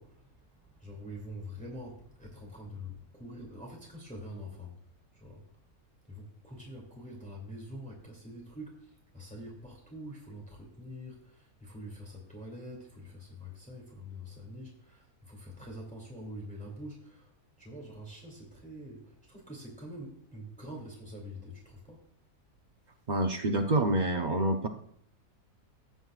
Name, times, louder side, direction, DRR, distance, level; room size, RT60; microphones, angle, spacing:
voice 1, 0.0-4.8 5.1-5.4 6.0-17.3 17.6-22.1, equal, 5° left, -2 dB, 2.6 m, -45 dB
voice 2, 23.1-24.7, right 2 dB, 40° right, 4 dB, 0.8 m, -27 dB
16.5 x 7.8 x 2.4 m, 0.70 s
omnidirectional pair, 1.6 m